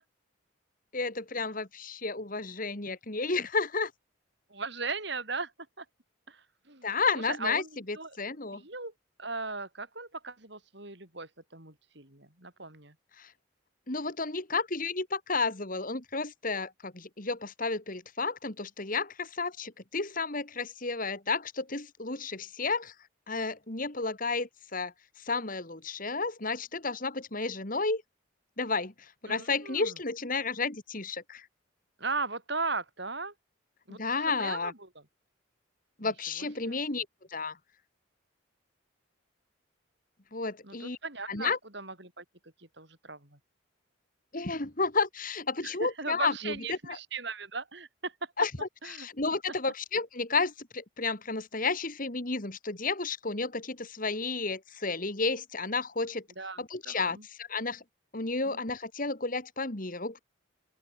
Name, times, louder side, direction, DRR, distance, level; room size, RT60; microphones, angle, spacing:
voice 1, 0.9-3.9 6.8-8.6 13.2-13.3 13.9-22.9 23.3-24.9 25.2-28.0 28.6-31.5 34.0-34.7 36.0-37.1 37.3-37.6 40.3-41.0 41.3-41.6 44.3-47.0 48.4-56.2 56.6-57.8 58.1-60.2, left 4 dB, 45° left, 2.2 m, -32 dB
voice 2, 4.5-5.5 5.8-5.9 6.3-6.9 7.3-7.7 7.9-8.2 8.5-8.9 9.2-12.9 29.3-29.9 32.0-33.3 33.9-34.9 36.0-36.1 36.4-36.8 40.6-42.2 42.8-43.4 45.6-48.1 48.8-49.1 56.4-57.2 58.5-58.6, right 4 dB, 55° right, 6.1 m, -38 dB
open air
head